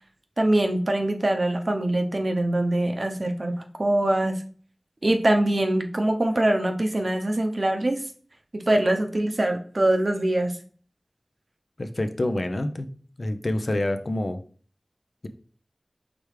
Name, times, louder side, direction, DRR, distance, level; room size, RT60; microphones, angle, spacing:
voice 1, 0.4-4.4 5.0-8.0 8.5-10.6, right 1 dB, 60° right, 5 dB, 0.7 m, -23 dB
voice 2, 11.8-12.9 13.2-14.4, left 1 dB, 65° left, 8 dB, 0.5 m, -27 dB
5.0 x 3.3 x 3.2 m, 0.43 s
wide cardioid pair, 40°, 0 cm